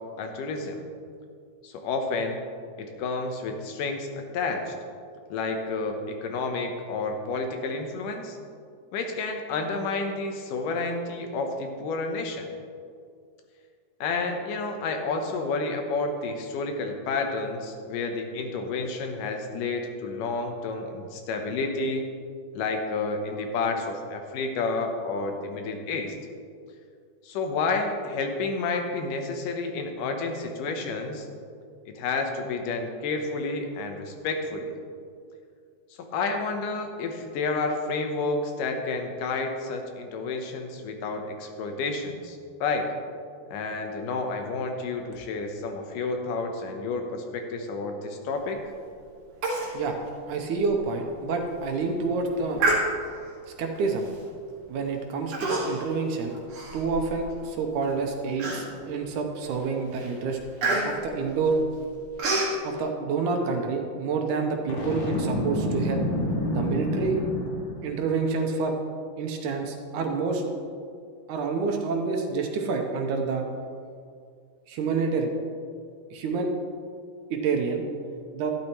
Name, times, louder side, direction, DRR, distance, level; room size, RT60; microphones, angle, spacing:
voice 1, 0.2-0.8 1.6-2.4 2.8-4.7 5.3-8.4 8.9-12.5 14.0-22.0 22.5-26.1 27.2-31.3 32.0-34.7 36.1-42.9 43.5-48.6, left 3 dB, 80° left, 4 dB, 2.6 m, -30 dB
Human voice, 49.4-49.7 50.1-50.2 50.7-50.8 51.3-51.6 52.6-53.3 54.1-54.3 55.3-55.9 56.3-57.3 57.8-57.9 58.4-59.0 59.4-59.7 59.9-62.6, right 2 dB, 50° right, 2.5 m, -28 dB
voice 2, 50.3-52.6 53.6-54.1 54.7-56.3 56.7-60.4 60.8-61.6 62.6-66.0 66.5-67.2 67.8-68.8 69.2-70.4 71.3-73.5 74.7-75.3 76.1-76.5 77.3-77.8 78.3-78.5, right 4 dB, 75° right, 3 dB, 2.3 m, -28 dB
Boom, 64.7-67.9, left 1 dB, 65° left, 3.3 m, -28 dB
12.0 x 12.0 x 3.1 m, 2.2 s
omnidirectional pair, 3.7 m